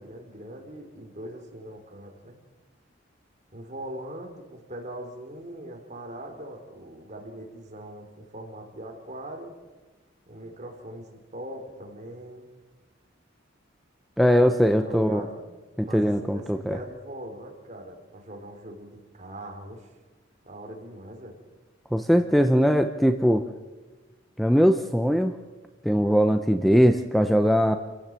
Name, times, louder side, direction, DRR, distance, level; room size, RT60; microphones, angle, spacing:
voice 1, 0.0-2.4 3.5-9.6 10.3-12.5 14.8-15.4 15.8-19.9 20.4-21.4, right 1 dB, 40° right, 3 dB, 3.8 m, -41 dB
voice 2, 14.2-15.2 15.8-16.8 21.9-23.4 24.4-25.4 25.8-27.8, equal, ahead, 8 dB, 0.7 m, -21 dB
28.5 x 16.0 x 7.5 m, 1.3 s
head